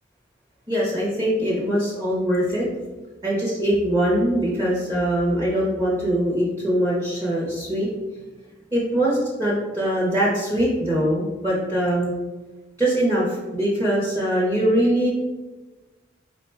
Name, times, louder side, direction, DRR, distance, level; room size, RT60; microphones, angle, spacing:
voice 1, 0.7-2.7 3.2-7.9 8.7-12.1 12.8-15.1, right 1 dB, 15° right, -6 dB, 0.6 m, -22 dB
3.7 x 2.1 x 4.3 m, 1.2 s
head